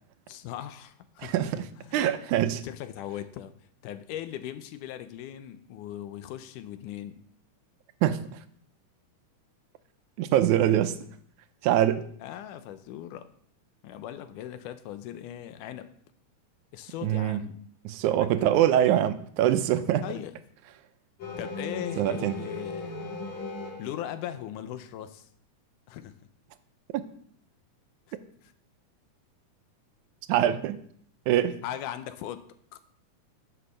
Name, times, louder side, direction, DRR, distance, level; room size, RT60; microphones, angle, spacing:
voice 1, 0.3-1.5 1.9-3.5 3.8-7.3 12.2-13.3 13.8-15.9 16.7-17.6 18.2-18.5 20.0-20.3 21.4-23.0 23.8-25.3 25.9-26.1 28.1-28.2 31.6-32.8, left 11 dB, 80° left, 11 dB, 2.2 m, -39 dB
voice 2, 1.2-1.7 1.9-2.6 8.0-8.2 10.2-11.0 11.6-12.1 17.0-17.4 17.9-20.0 22.0-22.4 26.9-27.0 30.3-30.8 31.3-31.6, right 11 dB, 80° right, 11 dB, 2.0 m, -24 dB
sound 1, 21.2-24.2, left 3 dB, 65° left, 3.7 m, -37 dB
9.5 x 7.0 x 6.6 m, 0.63 s
omnidirectional pair, 3.7 m